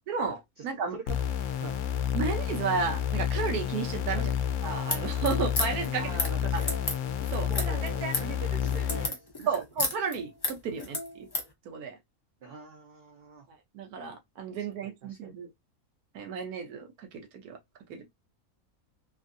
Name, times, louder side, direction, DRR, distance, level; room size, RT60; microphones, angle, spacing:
voice 1, 0.1-1.0 2.1-4.3 4.6-6.2 6.5-6.6 7.3-8.1 9.5-11.3 11.7-12.0 13.7-15.5 16.1-17.6 17.9-18.1, right 5 dB, 90° right, 1.2 m, -33 dB
sound 1, 1.1-9.1, left 9 dB, 70° left, 0.9 m, -30 dB
sound 2, 4.9-11.5, left 2 dB, 30° left, 0.5 m, -33 dB
voice 2, 5.9-6.8 7.5-9.6 12.4-13.5 14.8-15.3, right 5 dB, 60° right, 0.5 m, -43 dB
3.1 x 2.5 x 2.5 m
omnidirectional pair, 1.5 m